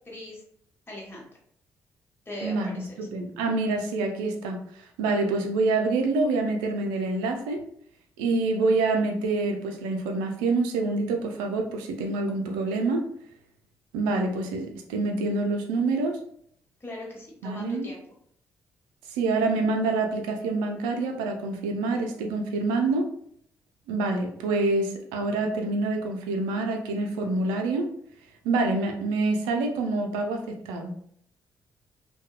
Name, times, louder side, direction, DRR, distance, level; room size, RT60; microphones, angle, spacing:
voice 1, 0.1-0.4 0.9-1.2 2.3-3.1 16.8-18.0, left 1 dB, 30° left, -3 dB, 1.2 m, -39 dB
voice 2, 2.4-7.6 8.2-13.1 13.9-16.2 17.4-17.9 19.1-23.1 23.9-27.8 28.4-31.0, right 3 dB, 80° right, 4 dB, 0.4 m, -26 dB
2.7 x 2.2 x 2.2 m, 0.65 s
hypercardioid pair, 45°, 8 cm